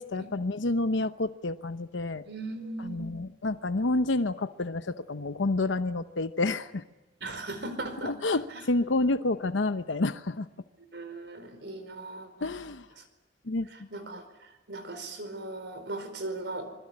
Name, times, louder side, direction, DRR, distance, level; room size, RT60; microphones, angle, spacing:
voice 1, 0.0-2.2 2.8-6.8 8.0-10.5 12.4-12.9 13.5-13.7, left 2 dB, 90° left, 10 dB, 0.8 m, -29 dB
voice 2, 2.2-3.1 7.2-8.4 10.9-12.5 13.0-13.1 13.7-16.8, right 2 dB, 65° right, 9 dB, 4.8 m, -38 dB
26.5 x 21.5 x 9.8 m, 1.1 s
head